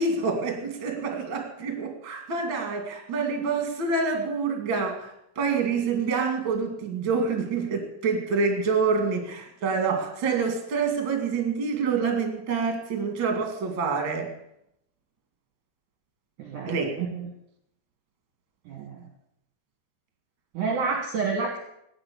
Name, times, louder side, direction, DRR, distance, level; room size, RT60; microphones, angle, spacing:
voice 1, 0.0-14.3 16.7-16.9, right 4 dB, 35° right, 4 dB, 2.2 m, -27 dB
voice 2, 16.4-17.3 18.7-19.0 20.5-21.6, right 5 dB, 60° right, 2 dB, 2.4 m, -29 dB
16.0 x 9.7 x 6.9 m, 0.77 s
omnidirectional pair, 5.0 m